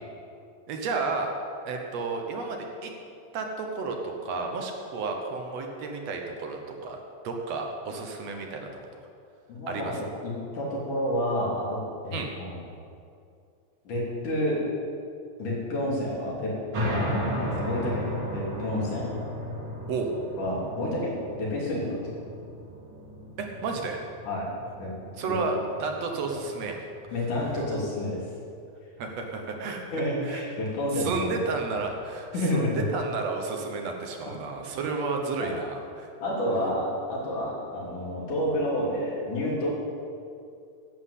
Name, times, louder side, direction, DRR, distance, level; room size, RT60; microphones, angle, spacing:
voice 1, 0.7-1.3 1.7-2.9 3.3-8.7 9.7-10.0 12.1-12.3 19.9-20.1 23.4-24.0 25.2-26.8 29.0-29.8 30.2-30.4 30.9-36.1, right 4 dB, 65° right, 3 dB, 2.1 m, -32 dB
voice 2, 9.5-11.8 12.0-12.6 13.8-14.6 15.4-16.5 16.9-19.1 20.4-21.9 24.2-24.5 24.8-24.9 25.3-25.5 27.1-28.2 29.9-31.2 32.3-32.8 35.4-35.6 36.2-39.7, left 1 dB, 85° left, -5 dB, 4.6 m, -29 dB
sound 1, 16.7-27.8, equal, 45° right, 2.6 m, -35 dB
11.0 x 7.9 x 8.3 m, 2.5 s
omnidirectional pair, 3.5 m